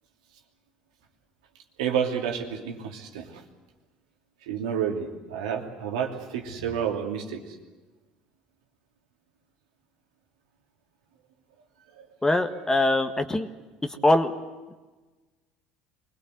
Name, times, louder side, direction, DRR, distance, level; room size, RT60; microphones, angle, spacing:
voice 1, 1.8-3.3 4.5-7.4 12.0-12.1, right 8 dB, 75° right, 2 dB, 2.9 m, -30 dB
voice 2, 12.2-13.5 14.0-14.3, left 1 dB, 15° left, 7 dB, 1.6 m, -22 dB
25.0 x 21.5 x 8.0 m, 1.2 s
hypercardioid pair, 65°, 4 cm